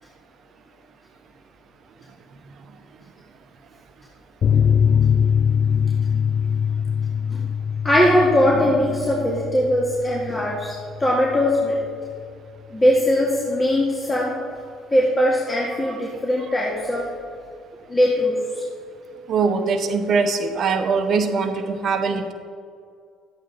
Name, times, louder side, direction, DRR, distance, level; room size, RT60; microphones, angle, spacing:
sound 1, 4.4-11.5 11.8-11.9 12.2-12.3, left 7 dB, 50° left, 0.4 m, -22 dB
voice 1, 7.8-11.8 12.7-14.3 14.9-17.0 17.9-18.6, left 1 dB, 25° left, -4 dB, 1.9 m, -20 dB
voice 2, 19.3-22.3, right 4 dB, 55° right, 8 dB, 0.9 m, -22 dB
11.5 x 8.6 x 4.0 m, 2.2 s
hypercardioid pair, 60°, 0 cm